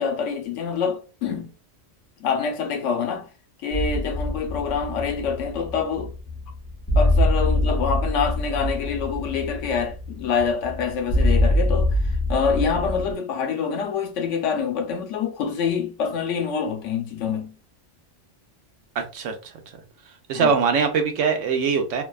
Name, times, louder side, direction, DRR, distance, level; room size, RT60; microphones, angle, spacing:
voice 1, 0.0-1.5 2.2-3.3 3.6-6.1 7.0-17.5 20.3-20.5, left 6 dB, 80° left, 0.9 m, -26 dB
sound 1, 3.7-13.1, left 1 dB, 15° left, 0.6 m, -24 dB
voice 2, 19.0-19.3 20.3-22.0, right 5 dB, 85° right, 1.0 m, -22 dB
2.6 x 2.2 x 2.2 m
omnidirectional pair, 1.2 m